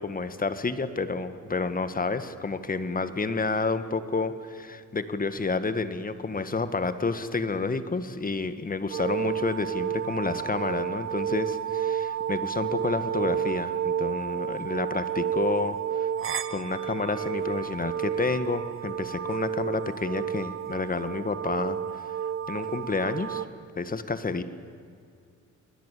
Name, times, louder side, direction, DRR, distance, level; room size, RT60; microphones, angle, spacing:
voice 1, 0.0-16.1 16.5-22.2 22.5-23.5 23.8-24.4, left 4 dB, 30° left, 11 dB, 1.9 m, -30 dB
sound 1, 8.9-23.5, right 9 dB, 45° right, 1.3 m, -31 dB
29.0 x 20.5 x 8.6 m, 2.3 s
cardioid pair, 90°, 30 cm